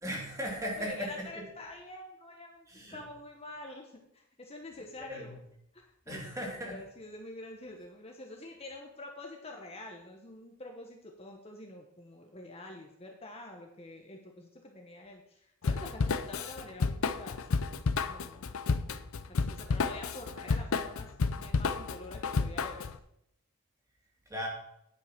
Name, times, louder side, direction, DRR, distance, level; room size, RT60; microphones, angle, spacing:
voice 1, 0.0-1.5 2.7-3.0 5.0-5.4 6.1-6.8 24.3-24.5, equal, 15° right, -1 dB, 2.5 m, -37 dB
voice 2, 0.8-5.4 5.7-17.8 18.0-18.8 19.3-22.9, left 2 dB, 30° left, 2 dB, 1.0 m, -47 dB
Drum kit / Drum, 15.6-23.0, left 4 dB, 85° left, 0.6 m, -31 dB
9.8 x 5.6 x 5.8 m, 0.77 s
head